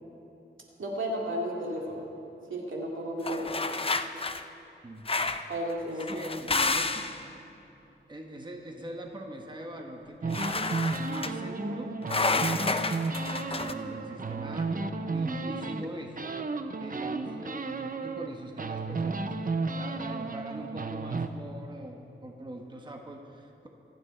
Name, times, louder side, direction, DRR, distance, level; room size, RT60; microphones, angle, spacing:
voice 1, 0.8-2.1 2.5-3.8 5.5-6.2, equal, 85° right, -2 dB, 2.4 m, -33 dB
sound 1, 3.2-4.4 5.1-5.5 6.0-7.2 10.3-11.3 12.1-13.7, left 3 dB, 30° left, 0.5 m, -30 dB
voice 2, 6.1-7.2 8.1-11.9 12.2-13.0 13.3-16.2 16.8-23.7, right 1 dB, 25° right, 2 dB, 1.2 m, -41 dB
sound 2, 10.2-15.9 16.2-18.3 18.6-21.3, right 3 dB, 45° right, 0.7 m, -33 dB
25.0 x 9.3 x 4.4 m, 2.9 s
wide cardioid pair, 120°, 20 cm